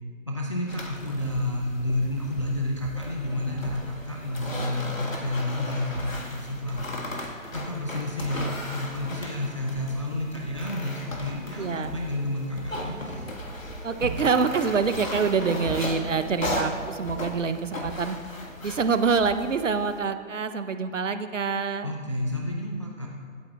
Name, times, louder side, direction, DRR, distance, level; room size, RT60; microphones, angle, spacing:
voice 1, 0.3-6.9 7.5-13.3 21.8-23.1, left 1 dB, 25° left, -2 dB, 0.5 m, -30 dB
sound 1, 0.7-20.0, left 1 dB, 70° left, 1.8 m, -36 dB
sound 2, 7.4-18.0, right 2 dB, 35° right, 1.4 m, -48 dB
voice 2, 11.6-12.0 13.8-18.2 18.6-21.9, right 5 dB, 65° right, 10 dB, 0.8 m, -26 dB
25.0 x 9.0 x 2.4 m, 2.1 s
figure-of-eight pair, 140°, 41 cm